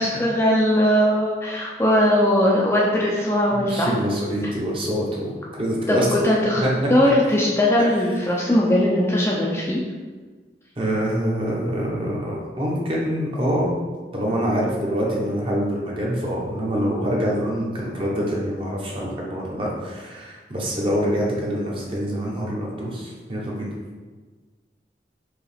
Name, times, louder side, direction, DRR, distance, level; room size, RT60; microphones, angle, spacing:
voice 1, 0.0-3.9 5.9-6.6 6.9-9.8, left 1 dB, 15° left, -4 dB, 0.4 m, -19 dB
voice 2, 3.5-6.1 6.6-6.7 10.8-13.7 14.1-23.7, equal, 30° right, -3 dB, 0.8 m, -25 dB
4.6 x 2.9 x 3.4 m, 1.4 s
head